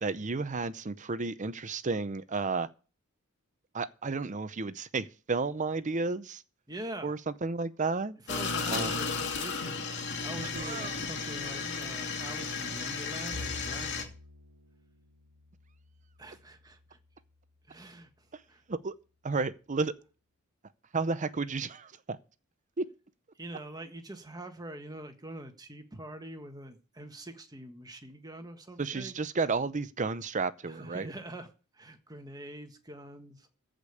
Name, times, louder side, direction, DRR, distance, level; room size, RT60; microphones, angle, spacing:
voice 1, 0.0-2.7 3.7-6.4 7.0-8.2 8.7-8.9 10.6-11.0 18.3-18.4 18.7-18.9 19.2-19.9 20.9-22.2 22.8-22.9 28.8-31.1, right 4 dB, 35° right, 0.6 m, -32 dB
voice 2, 6.7-7.1 8.3-9.9 10.2-14.1 16.2-17.0 17.7-18.6 23.4-29.1 30.7-31.5 31.7-33.5, right 1 dB, 20° right, 1.6 m, -44 dB
sound 1, 8.3-14.0, left 4 dB, 55° left, 2.5 m, -34 dB
Bowed string instrument, 13.3-17.7, left 2 dB, 75° right, 1.3 m, -49 dB
15.0 x 5.2 x 8.4 m
head